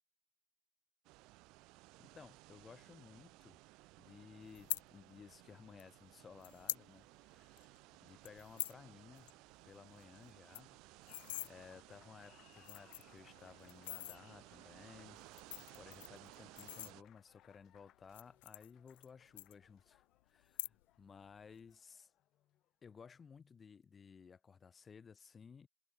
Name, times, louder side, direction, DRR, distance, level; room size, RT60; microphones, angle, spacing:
sound 1, 1.0-17.0, right 22 dB, 45° right, 0.5 m, -60 dB
voice 1, 2.0-3.6 3.9-7.7 8.0-9.3 9.6-10.8 11.4-15.2 15.8-22.1 22.8-25.7, left 6 dB, 15° left, 0.6 m, -58 dB
sound 2, 4.5-4.8 5.8-5.9 6.4-6.9 7.2-7.3 7.6-7.8 8.2-8.8 9.2-9.3 9.6-9.7 10.0-10.1 10.3-11.5 12.2-12.3 12.6-13.2 13.7-14.2 15.2-17.3 18.0-19.1 19.4-20.0 20.4-21.0 21.3-21.7, left 18 dB, 90° left, 0.5 m, -44 dB
Applause, 11.1-22.8, left 13 dB, 35° left, 5.7 m, -69 dB
supercardioid pair, 170°, 0 cm